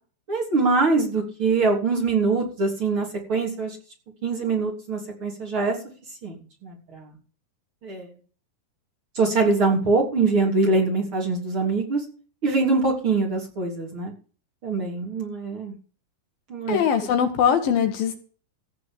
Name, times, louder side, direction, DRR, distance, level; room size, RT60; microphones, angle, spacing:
voice 1, 0.3-3.8 4.2-5.8 6.2-7.1 7.8-8.1 9.2-12.0 12.4-14.1 14.6-15.8 16.5-16.8, right 3 dB, 35° right, -2 dB, 3.9 m, -23 dB
voice 2, 16.7-18.2, left 8 dB, 70° left, 6 dB, 3.1 m, -21 dB
16.0 x 5.3 x 8.9 m, 0.40 s
omnidirectional pair, 4.4 m